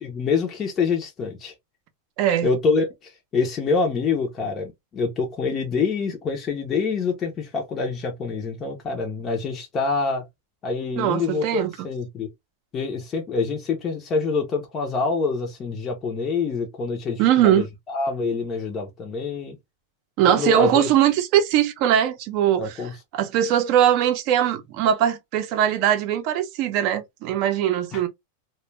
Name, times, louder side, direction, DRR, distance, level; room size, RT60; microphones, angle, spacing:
voice 1, 0.0-1.5 2.4-10.3 10.6-12.3 12.7-19.6 20.3-20.9 22.6-22.9 27.9-28.0, left 4 dB, 25° left, 0.6 m, -26 dB
voice 2, 2.2-2.5 11.0-11.9 17.2-17.7 20.2-22.8 23.1-28.1, right 10 dB, 45° right, 0.5 m, -21 dB
2.2 x 2.1 x 3.1 m
supercardioid pair, 150°, 0 cm